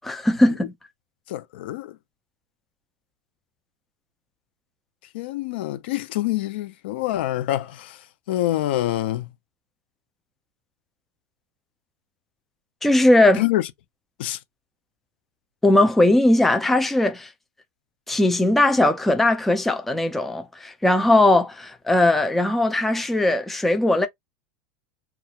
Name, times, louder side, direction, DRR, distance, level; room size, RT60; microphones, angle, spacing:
voice 1, 0.0-0.7 12.8-13.4 15.6-17.3 18.1-24.1, left 1 dB, 5° left, 0.3 m, -19 dB
voice 2, 1.3-2.0 5.1-8.0 8.3-9.3 13.4-13.7 14.2-14.4, left 14 dB, 75° left, 0.4 m, -26 dB
2.3 x 2.2 x 2.8 m
supercardioid pair, 155°, 6 cm